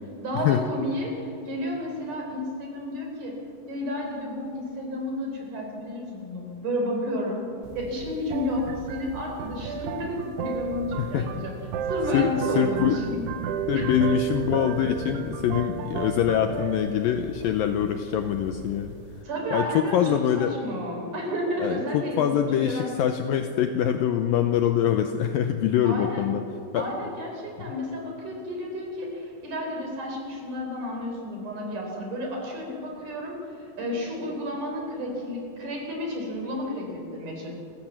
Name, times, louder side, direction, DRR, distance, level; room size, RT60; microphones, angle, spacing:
voice 1, 0.2-3.4 3.7-7.4 7.7-11.5 11.9-13.2 13.7-13.9 19.2-22.9 25.8-26.4 26.7-37.5, left 1 dB, 50° right, 0 dB, 5.2 m, -31 dB
sound 1, 7.6-19.2, right 7 dB, 75° right, 3.0 m, -33 dB
voice 2, 11.0-11.5 12.1-13.2 13.7-19.0 19.5-20.6 21.6-26.4 26.7-26.9 36.4-36.8, left 9 dB, 85° left, 7 dB, 2.0 m, -24 dB
29.0 x 14.5 x 7.4 m, 2.6 s
omnidirectional pair, 4.9 m